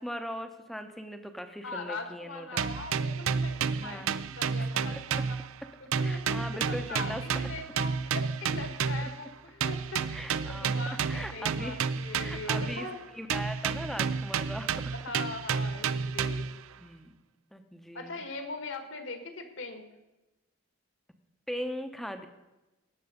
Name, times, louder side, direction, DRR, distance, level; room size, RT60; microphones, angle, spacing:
voice 1, 0.0-2.7 3.7-4.2 4.5-5.2 6.0-7.3 10.1-10.8 11.1-11.8 12.1-12.9 13.1-14.9 16.8-17.1 17.5-18.2 21.5-22.3, equal, ahead, 6 dB, 0.9 m, -39 dB
voice 2, 1.6-5.4 5.8-10.1 10.4-13.0 14.9-16.5 17.9-19.8, left 3 dB, 60° left, 6 dB, 1.8 m, -41 dB
sound 1, 2.6-5.7 5.9-9.2 9.6-12.9 13.3-16.6, right 6 dB, 75° right, 0.5 m, -31 dB
17.5 x 6.8 x 5.2 m, 1.0 s
head